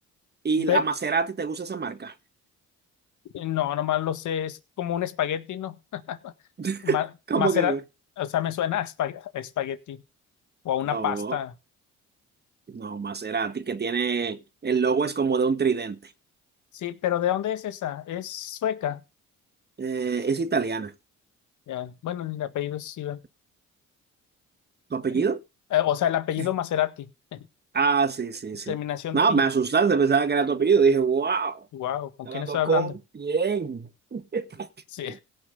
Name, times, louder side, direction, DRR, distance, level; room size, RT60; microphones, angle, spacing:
voice 1, 0.4-2.1 6.6-7.0 7.3-7.8 10.9-11.4 12.7-16.1 19.8-20.9 24.9-25.4 26.4-26.5 27.7-28.8 29.1-31.7 32.3-34.7 35.1-35.2, right 5 dB, 35° right, 1.7 m, -25 dB
voice 2, 3.3-6.3 6.8-7.1 7.3-7.8 8.2-10.0 10.7-11.6 16.7-19.0 21.7-23.2 25.1-25.3 25.7-27.4 28.7-29.4 31.7-32.9 34.9-35.2, left 11 dB, 75° left, 1.8 m, -28 dB
17.0 x 6.2 x 5.2 m
cardioid pair, 90°, 30 cm